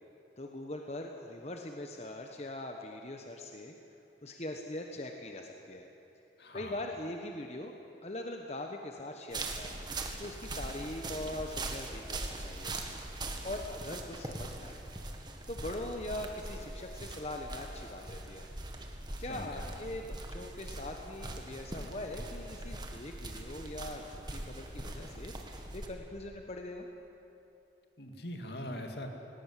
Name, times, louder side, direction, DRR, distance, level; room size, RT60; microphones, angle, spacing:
voice 1, 0.4-3.7 4.2-5.9 6.5-7.7 8.0-9.7 10.2-12.7 13.4-14.8 15.5-18.5 19.2-26.9, left 1 dB, 35° left, 3 dB, 1.2 m, -41 dB
voice 2, 6.4-6.8 19.3-19.8 28.0-29.1, left 1 dB, 65° left, 4 dB, 2.4 m, -42 dB
sound 1, 9.3-25.9, right 2 dB, 25° right, 1.8 m, -41 dB
19.5 x 18.0 x 10.0 m, 2.9 s
head